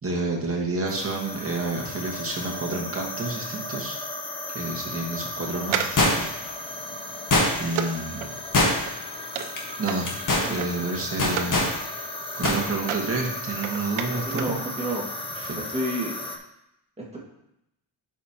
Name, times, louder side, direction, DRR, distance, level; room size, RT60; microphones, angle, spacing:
voice 1, 0.0-4.0 4.5-6.3 7.6-8.4 9.8-10.2 10.4-11.7 12.4-14.6 15.3-15.5, right 2 dB, 30° right, -1 dB, 1.5 m, -29 dB
sound 1, 0.9-16.4, left 1 dB, 10° left, 0.6 m, -36 dB
sound 2, 5.6-11.6 12.0-14.6 14.9-15.0, right 8 dB, 90° right, 0.7 m, -34 dB
sound 3, 6.0-6.5 7.3-7.8 8.5-9.1 9.4-9.6 10.0-10.5 11.2-11.7 12.4-12.6 12.9-13.0, left 2 dB, 40° left, 1.5 m, -22 dB
voice 2, 14.2-15.1 15.5-16.1 17.1-17.2, right 1 dB, 15° right, -4 dB, 1.9 m, -29 dB
11.0 x 5.1 x 2.9 m, 0.83 s
wide cardioid pair, 135°, 48 cm